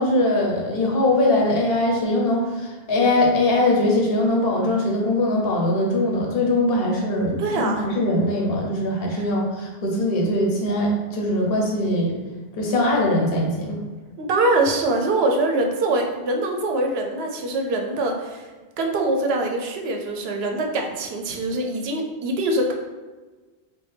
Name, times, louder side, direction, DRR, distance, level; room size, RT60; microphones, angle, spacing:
voice 1, 0.0-12.1 12.5-13.8, left 1 dB, 70° left, -1 dB, 0.9 m, -21 dB
voice 2, 7.4-7.9 9.2-9.3 14.2-18.5 18.8-22.7, right 2 dB, 80° right, 2 dB, 0.8 m, -23 dB
4.5 x 2.2 x 3.2 m, 1.3 s
omnidirectional pair, 1.0 m